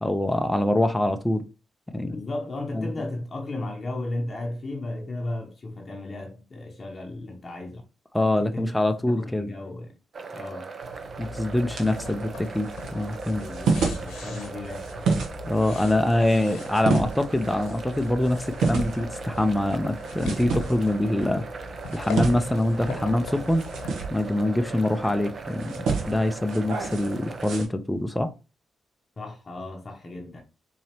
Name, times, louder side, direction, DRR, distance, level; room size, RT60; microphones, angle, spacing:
voice 1, 0.0-1.4 1.9-2.2 2.7-2.9 8.1-9.5 11.2-13.5 15.5-21.4 21.9-23.6 24.1-28.3, left 1 dB, 10° left, 0.5 m, -24 dB
voice 2, 2.1-7.8 8.4-8.7 9.1-9.9 10.3-10.7 13.3-15.3 29.2-30.4, left 2 dB, 40° left, 0.7 m, -35 dB
sound 1, 10.1-27.6, right 4 dB, 50° right, 0.6 m, -39 dB
sound 2, 10.8-27.7, right 4 dB, 70° right, 0.9 m, -32 dB
sound 3, 11.2-23.9, left 5 dB, 75° left, 0.9 m, -42 dB
4.0 x 2.8 x 2.9 m
hypercardioid pair, 40°, 0 cm